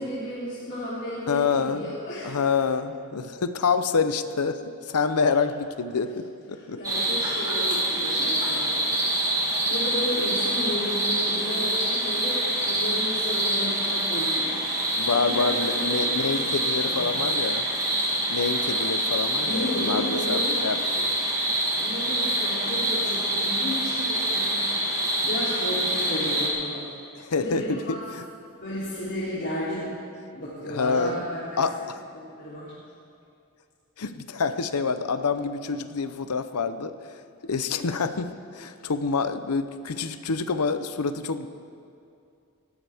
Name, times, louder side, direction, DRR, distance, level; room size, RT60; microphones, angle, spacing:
voice 1, 0.0-2.4 5.2-5.3 6.5-9.3 9.7-14.6 15.1-16.5 16.8-17.2 18.5-18.6 19.4-20.6 21.8-24.7 25.2-26.9 27.3-28.0 28.6-29.9 30.3-31.6 32.1-32.7, left 1 dB, 55° left, -10 dB, 3.1 m, -33 dB
voice 2, 1.3-1.9 2.2-6.8 7.7-7.8 15.0-17.7 18.3-21.1 27.2-28.2 30.6-31.2 31.6-32.0 34.0-36.9 37.4-41.5, left 5 dB, 85° left, 11 dB, 0.7 m, -27 dB
sound 1, 6.8-26.5, right 1 dB, 15° right, 2.4 m, -26 dB
19.0 x 15.5 x 3.5 m, 2.5 s
head